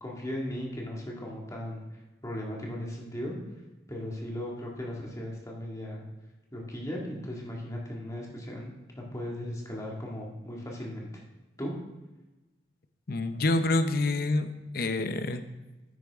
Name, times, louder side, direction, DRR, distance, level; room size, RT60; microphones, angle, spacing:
voice 1, 0.0-1.8 2.2-3.3 3.9-6.0 6.5-11.2 11.6-11.7, left 1 dB, 20° left, -2 dB, 2.0 m, -37 dB
voice 2, 13.1-14.5 14.7-15.4, left 2 dB, 55° left, 9 dB, 0.7 m, -27 dB
10.5 x 8.8 x 3.6 m, 1.1 s
head